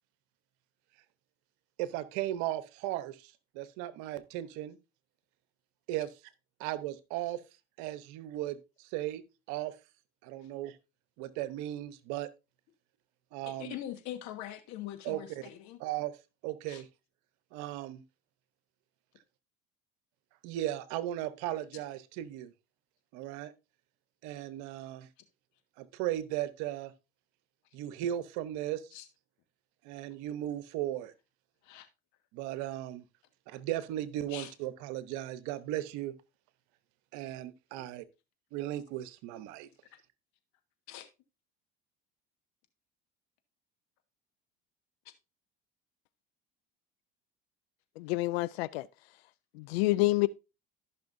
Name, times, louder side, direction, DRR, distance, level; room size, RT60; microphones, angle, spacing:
voice 1, 1.8-4.8 5.9-6.1 6.6-7.4 7.8-9.2 9.5-9.8 10.2-10.8 11.2-12.3 13.3-13.8 15.0-15.2 15.8-16.2 16.4-16.9 17.5-18.0 20.4-22.5 23.1-23.5 24.2-25.1 25.8-26.9 27.7-28.8 29.8-31.1 32.3-33.0 33.5-36.1 37.1-38.0 38.5-39.7, right 13 dB, 70° right, 1.0 m, -36 dB
voice 2, 13.5-15.8 16.7-16.8 28.9-29.1 31.6-31.9 34.3-34.5 37.8-37.9 39.9-40.0 40.9-41.1, left 12 dB, 65° left, 1.6 m, -43 dB
voice 3, 48.0-48.9 49.5-50.3, left 20 dB, 85° left, 0.5 m, -28 dB
14.0 x 5.9 x 2.6 m
hypercardioid pair, 75°, 30 cm